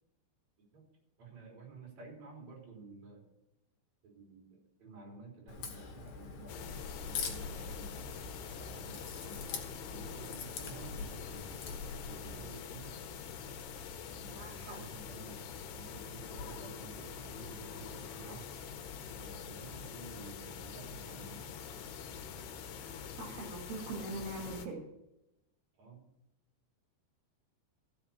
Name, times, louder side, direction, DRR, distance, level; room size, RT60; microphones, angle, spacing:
voice 1, 1.2-3.3 4.0-8.1 8.6-9.5 9.9-13.0 14.0-15.4 15.7-18.5 19.1-21.4 25.8-26.0, right 4 dB, 40° right, -1 dB, 4.7 m, -52 dB
Crack, 5.5-12.4, left 5 dB, 60° left, 2.4 m, -45 dB
sound 1, 6.5-24.7, left 6 dB, 75° left, 2.9 m, -45 dB
voice 2, 14.4-14.8 23.2-24.8, right 2 dB, 65° right, -1 dB, 3.9 m, -42 dB
14.5 x 5.8 x 7.1 m, 0.87 s
omnidirectional pair, 5.1 m